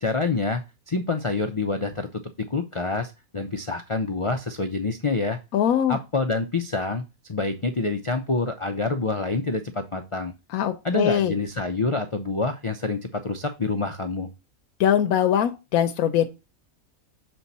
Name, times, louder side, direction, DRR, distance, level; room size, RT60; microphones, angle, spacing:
voice 1, 0.0-2.1 2.5-5.4 5.9-7.0 7.3-10.3 10.8-14.3, left 3 dB, 45° left, 7 dB, 0.4 m, -27 dB
voice 2, 5.5-6.0 10.5-11.3 14.8-16.3, left 10 dB, 90° left, 8 dB, 1.1 m, -22 dB
6.8 x 4.5 x 4.1 m, 0.26 s
omnidirectional pair, 1.5 m